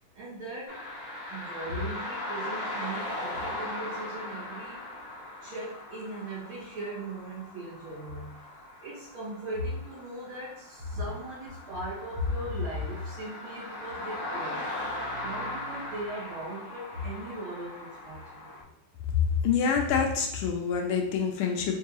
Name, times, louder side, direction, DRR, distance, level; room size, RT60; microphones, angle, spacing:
voice 1, 0.1-0.8 1.3-4.8 5.4-14.7 15.2-18.6, equal, 70° right, -8 dB, 2.2 m, -37 dB
sound 1, 0.7-18.6, left 1 dB, 85° right, 2.1 m, -39 dB
voice 2, 19.1-21.7, left 6 dB, 80° left, 2 dB, 1.5 m, -26 dB
4.5 x 2.7 x 3.0 m, 0.78 s
omnidirectional pair, 2.4 m